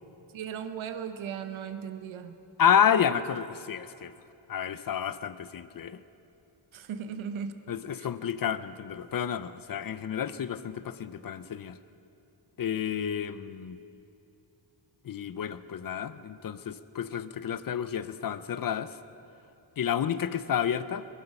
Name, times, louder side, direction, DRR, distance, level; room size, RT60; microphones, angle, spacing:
voice 1, 0.3-2.4 6.7-7.5 8.0-8.1, right 7 dB, 90° right, 8 dB, 1.1 m, -37 dB
voice 2, 2.6-4.1 4.5-6.0 7.7-11.8 12.6-13.8 15.0-19.0 19.8-21.2, left 8 dB, 50° left, 14 dB, 0.6 m, -30 dB
21.5 x 11.5 x 5.4 m, 2.7 s
cardioid pair, 105°, 46 cm